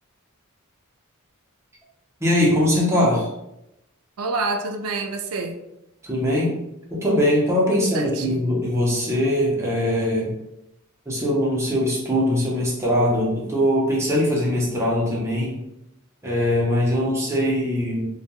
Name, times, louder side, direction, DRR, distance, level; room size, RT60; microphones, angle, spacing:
voice 1, 2.2-3.3 6.0-6.5 6.9-10.3 11.1-15.6 16.2-18.1, left 1 dB, 15° right, -4 dB, 0.7 m, -21 dB
voice 2, 4.2-5.6 7.9-8.6, right 3 dB, 70° right, 5 dB, 0.4 m, -28 dB
2.3 x 2.2 x 2.8 m, 0.87 s
head